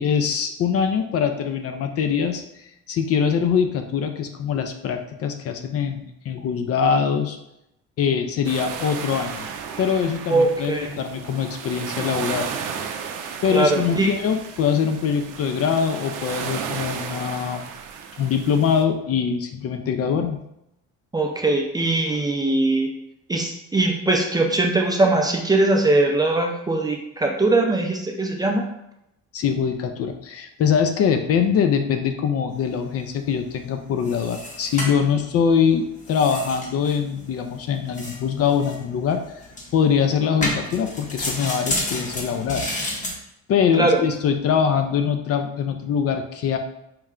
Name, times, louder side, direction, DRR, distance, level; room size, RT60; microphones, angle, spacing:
voice 1, 0.0-7.4 8.0-9.5 9.8-12.5 13.4-17.6 18.2-20.4 29.3-39.2 39.7-42.6 43.5-46.6, left 7 dB, 50° left, 6 dB, 0.4 m, -23 dB
sound 1, 8.4-18.8, right 7 dB, 80° right, 0.5 m, -34 dB
voice 2, 10.3-11.0 13.5-14.1 21.1-22.9 23.3-28.6 43.8-44.0, right 2 dB, 15° right, 1 dB, 0.4 m, -21 dB
sound 2, 32.5-43.1, left 1 dB, 25° left, 0.8 m, -32 dB
4.4 x 2.1 x 3.6 m, 0.82 s
cardioid pair, 125°, 31 cm